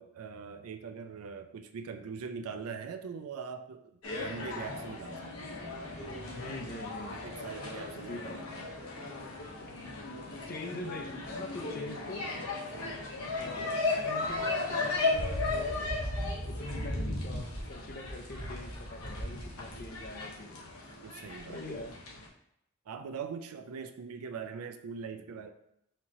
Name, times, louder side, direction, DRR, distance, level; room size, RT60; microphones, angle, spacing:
voice 1, 0.0-5.5 6.7-8.7 21.0-21.6 22.9-25.5, right 6 dB, 80° right, 7 dB, 0.4 m, -42 dB
sound 1, 4.0-22.3, left 2 dB, 75° left, 1.1 m, -36 dB
voice 2, 6.3-7.2 7.9-8.4 10.5-12.3 13.2-15.8 16.4-20.8 21.4-21.9, left 1 dB, 40° left, 3 dB, 0.5 m, -43 dB
4.4 x 2.9 x 3.6 m, 0.78 s
head